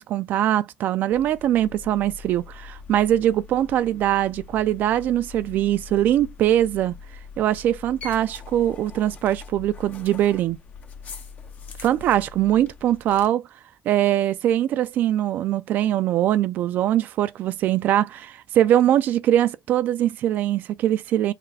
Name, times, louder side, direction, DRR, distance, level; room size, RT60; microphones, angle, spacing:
voice 1, 0.0-6.9 7.4-10.6 11.8-13.4 13.9-21.3, right 12 dB, 75° right, 0.3 m, -22 dB
sound 1, 1.1-13.3, left 5 dB, 55° left, 0.9 m, -43 dB
4.1 x 2.1 x 4.0 m
cardioid pair, 100°, 3 cm